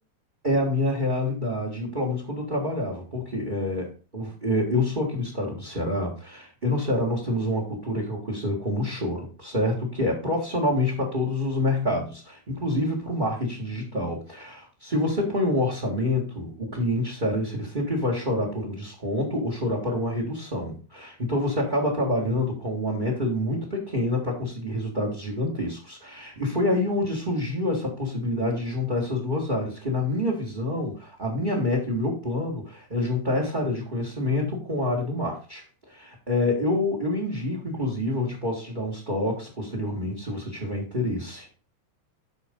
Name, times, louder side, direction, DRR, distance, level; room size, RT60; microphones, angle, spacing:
voice 1, 0.4-41.5, left 1 dB, 20° right, 1 dB, 1.6 m, -27 dB
9.3 x 6.1 x 3.8 m, 0.35 s
omnidirectional pair, 3.4 m